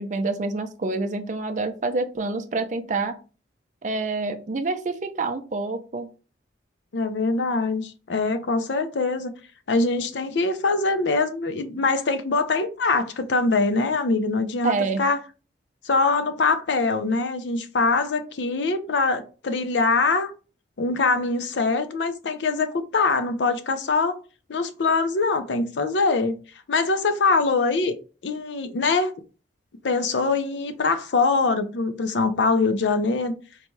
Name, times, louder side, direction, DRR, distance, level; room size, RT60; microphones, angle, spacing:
voice 1, 0.0-3.2 3.8-6.1 14.6-15.1, right 3 dB, 45° right, 0.5 m, -27 dB
voice 2, 6.9-9.3 9.7-15.2 15.8-20.3 20.8-24.2 24.5-26.3 26.7-28.0 28.2-29.1 29.8-33.3, left 3 dB, 80° left, 0.5 m, -23 dB
4.0 x 2.3 x 3.0 m
head